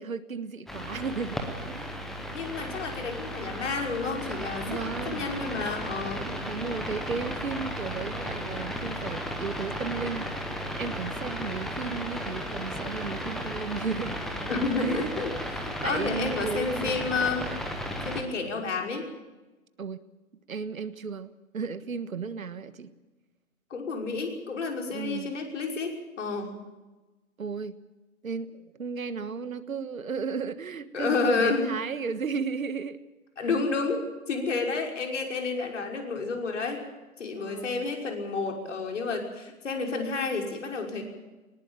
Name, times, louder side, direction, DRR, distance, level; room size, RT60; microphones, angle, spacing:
voice 1, 0.0-1.9 4.7-5.3 6.2-10.3 10.8-14.3 14.8-15.1 15.8-17.1 19.8-20.0 20.5-22.9 24.9-25.3 27.4-27.8 28.2-33.0 37.3-37.8, right 5 dB, 70° right, 13 dB, 1.5 m, -34 dB
sound 1, 0.7-18.2, equal, ahead, 0.7 m, -35 dB
voice 2, 2.3-4.8 5.1-6.2 14.5-15.3 15.6-17.5 18.0-19.1 23.7-26.5 30.9-31.7 33.4-34.0 34.3-36.8 37.2-41.0, left 4 dB, 55° left, 2 dB, 5.7 m, -30 dB
20.0 x 19.0 x 7.5 m, 1.2 s
figure-of-eight pair, 140°, 43 cm